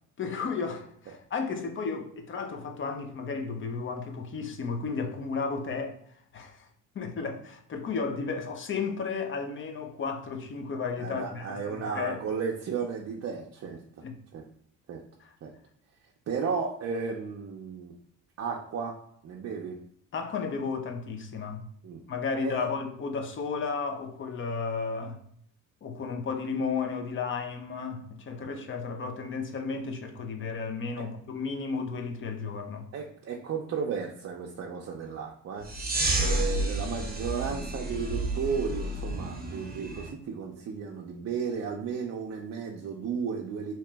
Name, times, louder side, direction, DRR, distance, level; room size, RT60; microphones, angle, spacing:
voice 1, 0.2-6.0 6.3-6.7 6.9-12.2 14.0-14.2 15.2-15.3 20.1-21.7 22.1-25.2 25.8-32.9, left 5 dB, 35° left, 0.5 m, -33 dB
voice 2, 11.0-13.8 14.3-14.4 14.9-15.0 15.4-15.5 16.3-17.9 18.4-19.0 19.2-19.8 21.8-22.0 22.4-22.7 28.4-28.5 32.9-43.7, right 6 dB, 45° right, 0.5 m, -34 dB
sound 1, 35.6-40.1, right 1 dB, 25° right, 0.8 m, -31 dB
2.9 x 2.9 x 3.3 m
cardioid pair, 135°, 33 cm